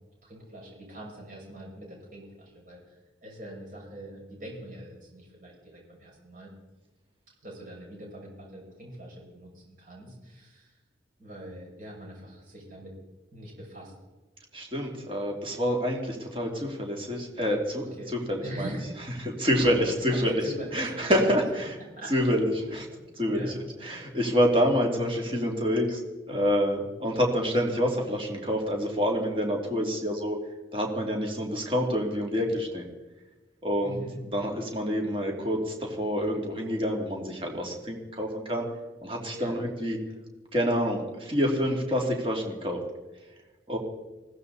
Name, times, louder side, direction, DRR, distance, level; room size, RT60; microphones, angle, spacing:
voice 1, 0.2-6.5 7.4-10.8 11.2-12.9 13.3-13.9 18.0-18.1 18.4-18.9 20.1-21.4 22.0-22.1 23.3-23.6 33.8-34.2 39.3-39.5, right 1 dB, 45° right, -3 dB, 6.7 m, -42 dB
voice 2, 14.5-17.8 18.1-18.8 19.2-20.3 20.7-21.7 22.1-22.4 22.7-22.9 23.2-23.5 23.8-26.0 26.3-30.4 30.7-32.8 33.6-34.0 34.3-38.6 39.0-40.0 40.5-42.8 43.7-43.8, equal, 30° right, 1 dB, 3.0 m, -27 dB
20.5 x 15.5 x 4.2 m, 1.2 s
head